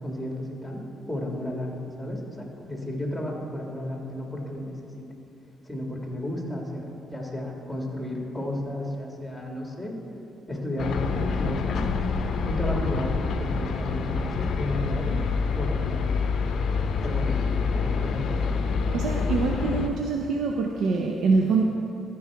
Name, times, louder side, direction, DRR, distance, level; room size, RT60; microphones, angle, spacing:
voice 1, 0.0-5.1 5.6-10.0 10.5-11.8 12.4-15.2 15.5-16.1 17.0-17.5 17.7-18.5, left 1 dB, 5° left, 0 dB, 1.6 m, -33 dB
sound 1, 10.8-19.9, left 5 dB, 65° left, 0.6 m, -27 dB
voice 2, 18.9-21.6, right 4 dB, 75° right, 1 dB, 0.6 m, -24 dB
14.0 x 4.7 x 4.6 m, 2.7 s
cardioid pair, 90°, 0 cm